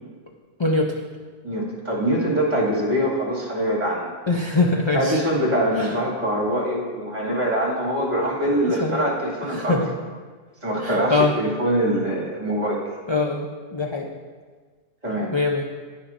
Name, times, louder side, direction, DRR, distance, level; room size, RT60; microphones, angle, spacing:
voice 1, 0.6-1.0 4.3-5.2 5.8-5.9 7.3-7.4 8.4-9.0 9.5-9.9 10.8-11.3 13.1-14.1 15.3-15.6, left 3 dB, 40° left, 0 dB, 0.4 m, -23 dB
voice 2, 1.4-4.1 4.9-9.8 10.6-12.8 15.0-15.3, right 1 dB, 30° right, -4 dB, 2.4 m, -23 dB
10.5 x 9.8 x 2.6 m, 1.5 s
omnidirectional pair, 1.4 m